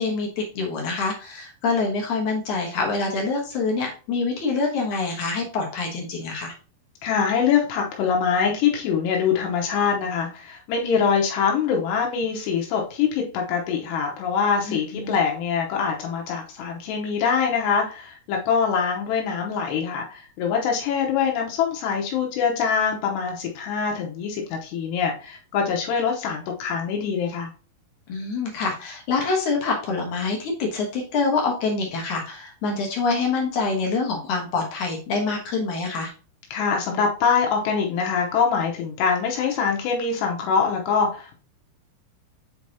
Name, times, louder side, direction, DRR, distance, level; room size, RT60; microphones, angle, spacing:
voice 1, 0.0-6.5 14.6-15.2 28.1-36.1, left 4 dB, 65° left, 0 dB, 2.0 m, -26 dB
voice 2, 7.0-27.5 36.5-41.4, left 6 dB, 85° left, 0 dB, 3.0 m, -24 dB
7.5 x 4.7 x 2.8 m, 0.36 s
omnidirectional pair, 4.9 m